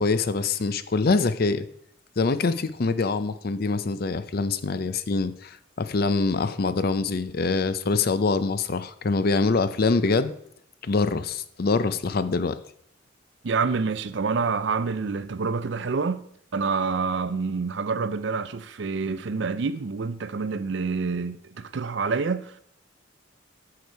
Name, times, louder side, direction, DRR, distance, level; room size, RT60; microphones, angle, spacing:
voice 1, 0.0-1.7 2.2-10.3 10.8-12.6, left 3 dB, 50° left, 0.5 m, -24 dB
voice 2, 13.4-16.2 16.5-22.6, right 4 dB, 60° right, 0.5 m, -27 dB
9.5 x 6.8 x 4.6 m
head